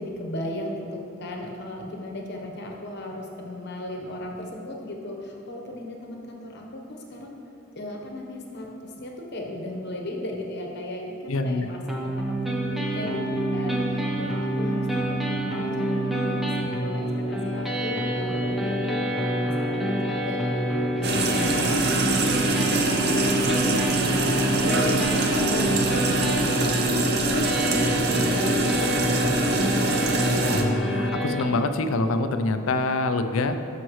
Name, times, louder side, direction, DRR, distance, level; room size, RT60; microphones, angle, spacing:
voice 1, 0.0-7.4 7.7-30.1, left 1 dB, 50° left, 1 dB, 1.1 m, -37 dB
voice 2, 11.3-11.7 21.5-21.7 30.4-33.6, left 2 dB, 75° left, 8 dB, 0.5 m, -26 dB
sound 1, 11.9-31.4, right 1 dB, ahead, 0.8 m, -27 dB
sound 2, 21.0-30.6, right 2 dB, 50° right, 0.7 m, -24 dB
12.5 x 5.9 x 3.1 m, 2.7 s
head